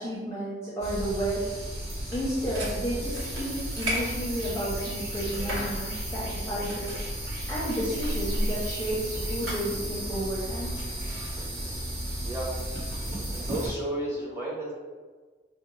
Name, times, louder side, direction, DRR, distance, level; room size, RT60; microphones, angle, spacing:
voice 1, 0.0-1.4 2.1-7.0 7.5-10.7, right 1 dB, 15° left, -7 dB, 0.6 m, -32 dB
Early Morning Birds Waking up and Cicadas, 0.8-13.7, right 1 dB, 55° right, 1.3 m, -33 dB
sound 1, 2.0-7.2, equal, 75° right, 1.0 m, -38 dB
voice 2, 11.4-11.8 12.2-12.5 13.3-14.7, right 1 dB, 10° right, -6 dB, 0.8 m, -33 dB
4.7 x 2.0 x 3.1 m, 1.4 s
head